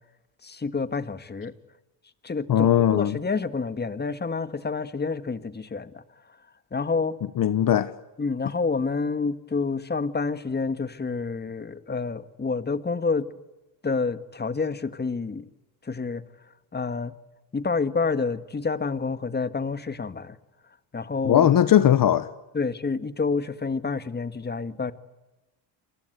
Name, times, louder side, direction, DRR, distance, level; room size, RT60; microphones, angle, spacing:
voice 1, 0.4-1.5 2.2-6.0 6.7-7.2 8.2-13.3 13.8-15.5 15.8-16.2 16.7-17.1 17.5-20.4 20.9-21.5 22.5-24.9, left 4 dB, 25° left, 1.8 m, -28 dB
voice 2, 2.5-3.2 7.4-7.9 21.2-22.3, left 10 dB, 50° left, 1.2 m, -19 dB
30.0 x 23.5 x 8.2 m
cardioid pair, 95°, 43 cm